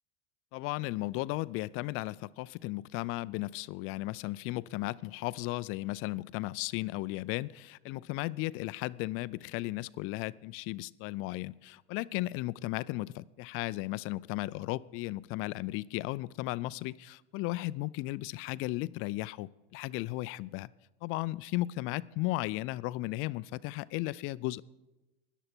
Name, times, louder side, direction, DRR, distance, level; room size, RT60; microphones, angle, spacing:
voice 1, 0.5-20.7 21.0-24.6, left 19 dB, 45° left, 18 dB, 0.4 m, -35 dB
17.0 x 11.0 x 4.4 m, 1.0 s
hypercardioid pair, 105°, 33 cm